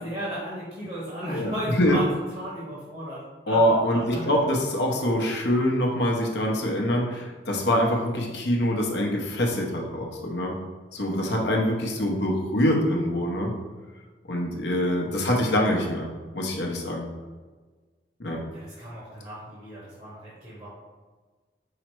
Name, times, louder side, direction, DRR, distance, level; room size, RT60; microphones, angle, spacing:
voice 1, 0.0-3.2 3.5-3.6 4.1-4.4 18.5-20.7, equal, 35° right, -9 dB, 1.0 m, -35 dB
voice 2, 3.5-10.6 10.9-13.5 14.3-16.1 16.3-17.1 18.2-18.4, equal, 75° left, 0 dB, 0.8 m, -24 dB
4.8 x 2.1 x 4.4 m, 1.4 s
head